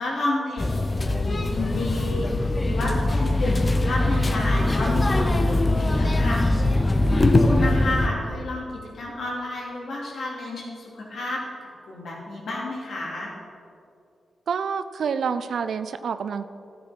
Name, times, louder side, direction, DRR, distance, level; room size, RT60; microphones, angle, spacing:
voice 1, 0.0-6.8 7.1-8.7 8.9-11.4 11.9-13.3, left 2 dB, 70° left, -3 dB, 2.8 m, -30 dB
sound 1, 0.6-8.1, left 2 dB, 35° left, 1.0 m, -22 dB
voice 2, 14.5-16.5, right 6 dB, 75° right, 12 dB, 0.5 m, -28 dB
12.5 x 7.1 x 6.0 m, 2.5 s
supercardioid pair, 40°, 0 cm